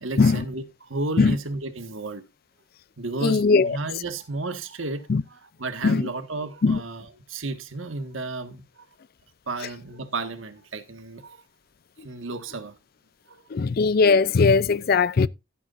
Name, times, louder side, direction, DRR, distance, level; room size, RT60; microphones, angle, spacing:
voice 1, 0.0-2.2 3.0-8.6 9.5-11.4 12.0-12.7 13.3-13.4, right 2 dB, 85° right, 1.7 m, -33 dB
voice 2, 3.2-3.8 5.1-5.2 5.8-6.1 6.6-6.8 13.5-15.3, left 4 dB, 50° left, 0.4 m, -19 dB
15.5 x 8.6 x 2.6 m
head